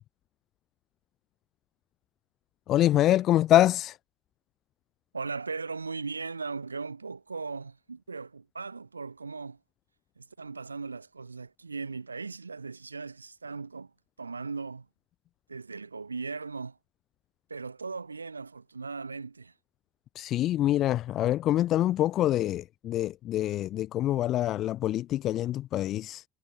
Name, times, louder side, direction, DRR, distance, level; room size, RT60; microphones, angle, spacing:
voice 1, 2.7-4.0 20.1-26.2, left 13 dB, 45° left, 0.7 m, -25 dB
voice 2, 5.1-9.6 10.2-13.9 14.2-14.9 15.5-16.8 17.5-19.5, right 4 dB, 85° right, 3.1 m, -38 dB
figure-of-eight pair, 65°, 0 cm